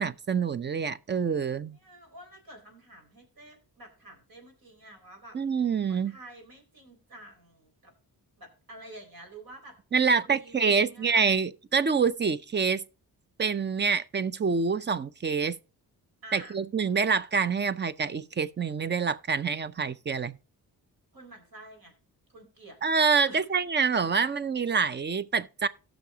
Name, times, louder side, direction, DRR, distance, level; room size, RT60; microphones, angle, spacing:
voice 1, 0.0-1.8 5.3-6.1 9.9-12.8 13.4-15.6 16.3-20.4 22.8-25.7, right 5 dB, 30° right, 0.5 m, -26 dB
voice 2, 1.7-5.4 5.9-7.9 8.4-9.8 10.0-11.2 16.2-16.6 21.1-21.9 22.3-22.8 23.3-23.5, right 2 dB, 65° right, 3.9 m, -49 dB
17.5 x 6.2 x 2.8 m
cardioid pair, 90°, 38 cm